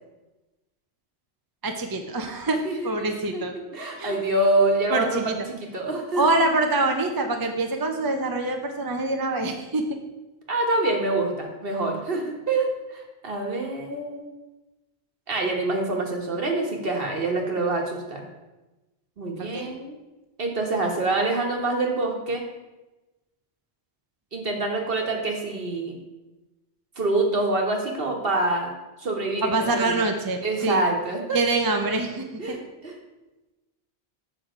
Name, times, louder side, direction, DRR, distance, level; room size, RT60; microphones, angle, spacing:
voice 1, 1.6-2.6 2.8-3.5 4.0-4.2 4.9-5.4 6.2-9.8 19.4-19.7 25.0-25.2 29.4-30.8 31.3-32.6, right 2 dB, 25° right, 4 dB, 0.6 m, -25 dB
voice 2, 2.6-3.4 3.7-5.3 5.6-6.2 10.5-14.3 15.3-18.3 19.2-20.0 20.4-22.4 24.3-26.0 27.0-29.9 30.4-31.4 32.4-32.9, right 2 dB, 55° right, 1 dB, 1.5 m, -26 dB
7.7 x 6.1 x 4.9 m, 1.1 s
omnidirectional pair, 1.2 m